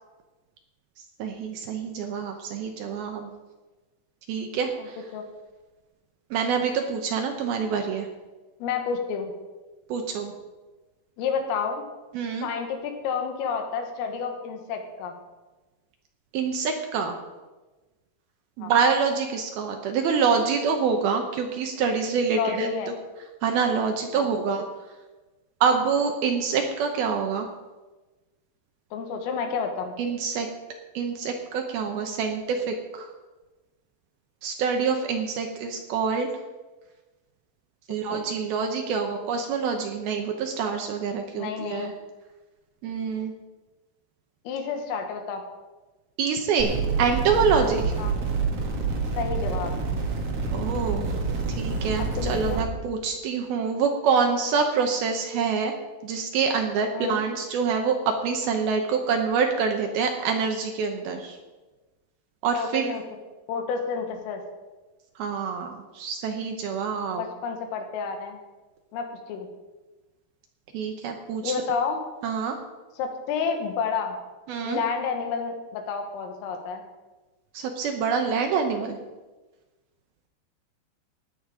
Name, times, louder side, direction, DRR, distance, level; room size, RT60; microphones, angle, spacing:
voice 1, 1.2-3.3 4.3-5.0 6.3-8.1 9.9-10.3 12.1-12.5 16.3-17.2 18.6-22.7 23.4-24.6 25.6-27.5 30.0-30.5 30.9-33.1 34.4-36.3 37.9-41.9 42.8-43.3 46.2-47.9 50.5-51.1 51.6-55.7 56.0-61.4 62.4-62.9 65.2-67.2 70.7-71.5 72.2-72.6 74.5-74.8 77.5-79.0, right 5 dB, 75° right, 4 dB, 2.2 m, -26 dB
voice 2, 4.8-5.2 8.6-9.3 11.2-11.8 12.4-15.2 18.6-18.7 22.3-22.9 24.1-24.3 28.9-30.0 38.1-38.2 41.4-42.0 44.5-45.4 48.0-48.1 49.2-49.7 52.2-52.6 56.9-57.3 62.5-63.0 63.5-64.4 67.2-68.4 68.9-69.5 71.4-72.0 73.0-74.2 74.6-76.8, left 5 dB, 90° left, 4 dB, 4.2 m, -30 dB
sound 1, 46.6-52.6, right 4 dB, 55° right, 1.7 m, -27 dB
16.5 x 10.0 x 5.0 m, 1.2 s
omnidirectional pair, 5.7 m